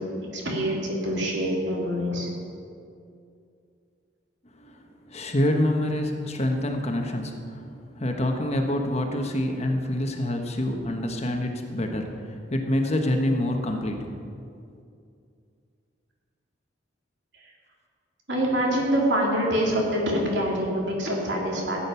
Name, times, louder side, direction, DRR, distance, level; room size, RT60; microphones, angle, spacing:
voice 1, 0.3-2.3 18.3-21.8, equal, 70° right, -2 dB, 2.9 m, -25 dB
voice 2, 4.6-14.2, left 1 dB, 35° left, 3 dB, 1.2 m, -27 dB
15.5 x 8.8 x 5.7 m, 2.4 s
head